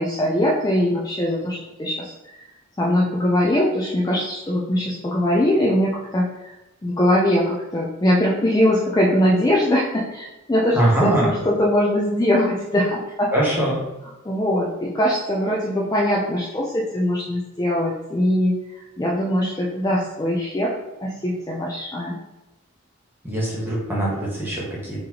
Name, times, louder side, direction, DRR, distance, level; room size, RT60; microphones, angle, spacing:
voice 1, 0.0-2.1 2.8-6.6 6.8-13.3 14.2-18.6 19.0-20.7 21.0-22.2, left 1 dB, 15° left, -4 dB, 0.3 m, -21 dB
voice 2, 10.7-11.3 13.3-13.8 23.2-25.1, right 1 dB, 10° right, -6 dB, 1.0 m, -22 dB
3.8 x 3.1 x 2.9 m, 1.0 s
head